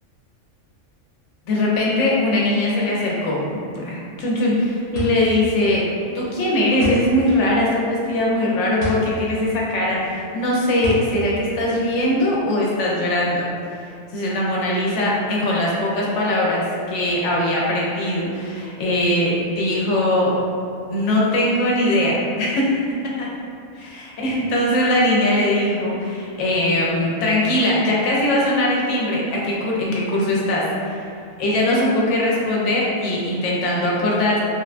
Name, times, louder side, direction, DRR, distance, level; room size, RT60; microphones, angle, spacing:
voice 1, 1.5-5.8 6.1-13.5 14.1-20.3 20.9-22.7 23.0-23.3 24.2-31.0 31.4-34.4, left 1 dB, 75° left, -4 dB, 0.9 m, -21 dB
sound 1, 4.9-12.5, equal, 50° right, 0.9 m, -32 dB
3.1 x 2.2 x 2.4 m, 2.3 s
omnidirectional pair, 1.3 m